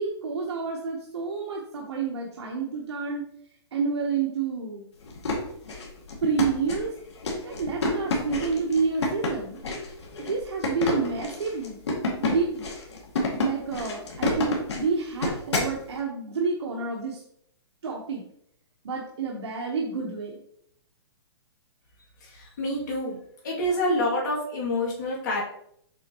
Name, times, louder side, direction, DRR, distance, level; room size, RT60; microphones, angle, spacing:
voice 1, 0.0-3.2 3.7-4.8 6.2-6.9 7.4-9.6 10.2-11.8 12.2-12.7 13.4-17.2 17.8-18.2 18.8-20.4, right 5 dB, 75° right, -1 dB, 1.2 m, -29 dB
sound 1, 5.0-15.8, left 3 dB, 75° left, 2.1 m, -29 dB
voice 2, 22.3-23.2 23.4-25.4, left 1 dB, 45° left, -4 dB, 2.4 m, -27 dB
7.5 x 4.4 x 2.9 m, 0.70 s
hypercardioid pair, 175°, 14 cm